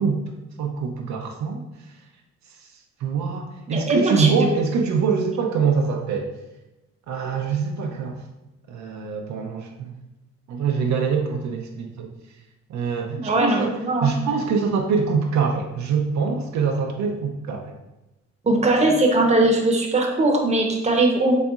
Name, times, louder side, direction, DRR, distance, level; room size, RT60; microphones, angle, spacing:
voice 1, 0.0-2.1 2.4-6.4 7.1-8.2 8.7-9.9 10.5-12.4 12.7-17.7, right 5 dB, 65° right, 2 dB, 0.5 m, -24 dB
voice 2, 3.7-4.4 13.2-14.1 18.5-21.4, right 2 dB, 20° right, 1 dB, 0.8 m, -20 dB
4.0 x 3.4 x 2.4 m, 1.0 s
cardioid pair, 90°, 30 cm